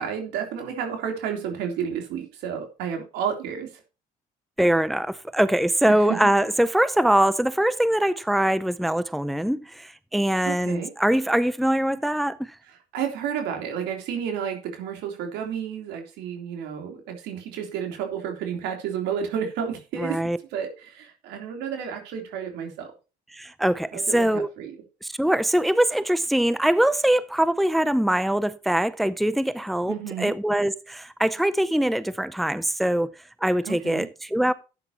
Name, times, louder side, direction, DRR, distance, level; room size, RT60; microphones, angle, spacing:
voice 1, 0.0-3.7 6.1-6.2 10.5-10.9 12.9-20.2 20.5-22.9 23.9-24.7 29.9-30.3 33.6-34.1, right 8 dB, 90° right, 3.5 m, -31 dB
voice 2, 4.6-12.5 20.0-20.4 23.3-24.5 25.0-33.1 33.4-34.5, right 1 dB, ahead, 0.5 m, -23 dB
12.5 x 9.2 x 2.9 m
cardioid pair, 110°, 17 cm